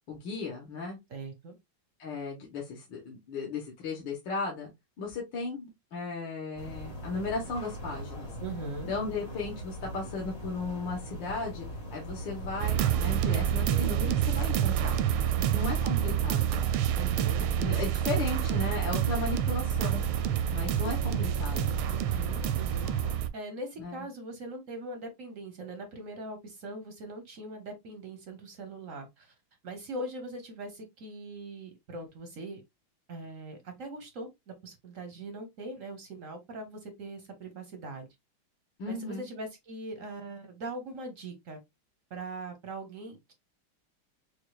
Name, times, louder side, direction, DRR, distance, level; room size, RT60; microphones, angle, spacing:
voice 1, 0.1-1.0 2.0-4.7 5.0-8.3 8.9-11.7 11.9-15.0 15.5-16.7 17.4-20.0 20.5-21.8 23.8-24.1 38.8-39.3, left 3 dB, 65° left, 1.8 m, -36 dB
voice 2, 1.1-1.6 8.4-8.9 15.3-15.7 16.9-17.9 21.9-22.9 23.1-29.3 29.6-32.6 33.1-38.1 38.9-41.6 42.1-43.3, right 2 dB, 60° right, 0.8 m, -41 dB
sound 1, 6.6-23.1, equal, 40° left, 2.1 m, -40 dB
sound 2, 12.6-23.3, right 11 dB, 90° right, 1.4 m, -28 dB
6.2 x 2.4 x 2.3 m
omnidirectional pair, 2.2 m